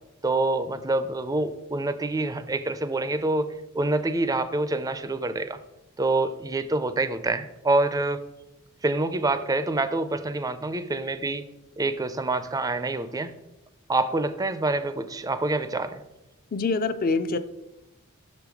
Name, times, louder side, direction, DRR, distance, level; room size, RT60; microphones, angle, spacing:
voice 1, 0.2-3.5 3.7-5.6 6.0-8.2 8.8-11.4 11.8-13.4 13.9-16.0, right 2 dB, 15° right, 12 dB, 0.4 m, -26 dB
voice 2, 16.5-17.4, left 4 dB, 40° left, 11 dB, 0.5 m, -25 dB
6.3 x 5.2 x 4.7 m, 0.92 s
head